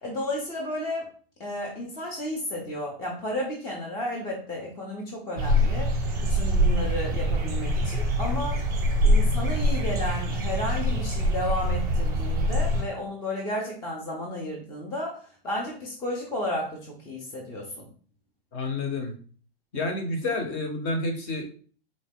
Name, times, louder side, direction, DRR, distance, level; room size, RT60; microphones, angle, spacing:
voice 1, 0.0-1.1 1.4-5.9 6.2-8.7 9.0-17.9, left 1 dB, 15° left, -2 dB, 0.6 m, -33 dB
sound 1, 5.4-12.8, equal, 10° right, 0.9 m, -24 dB
voice 2, 18.5-19.1 19.7-21.4, left 2 dB, 35° left, 4 dB, 0.9 m, -29 dB
4.0 x 2.0 x 3.4 m, 0.42 s
hypercardioid pair, 145°, 31 cm